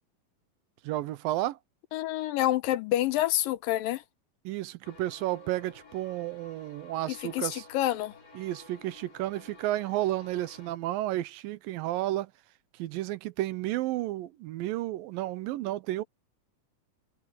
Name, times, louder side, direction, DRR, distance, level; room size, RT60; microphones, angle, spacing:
voice 1, 0.8-1.6 4.5-7.6 8.4-12.3 12.8-16.0, right 15 dB, 80° right, 2.5 m, -32 dB
voice 2, 1.9-4.0 7.1-8.1, left 14 dB, 85° left, 2.5 m, -28 dB
sound 1, 4.8-10.7, left 3 dB, 25° left, 4.3 m, -53 dB
omnidirectional pair, 4.0 m